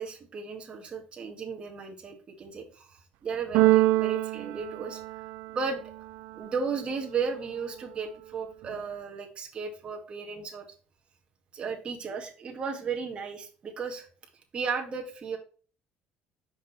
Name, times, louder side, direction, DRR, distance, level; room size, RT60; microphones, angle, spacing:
voice 1, 0.0-5.2 5.5-5.8 6.3-10.7 11.5-14.1 14.5-15.4, right 5 dB, 35° right, 1 dB, 2.0 m, -35 dB
Keyboard (musical), 3.5-5.7, right 17 dB, 80° right, 0.4 m, -24 dB
6.1 x 5.2 x 3.4 m, 0.39 s
cardioid pair, 120°, 3 cm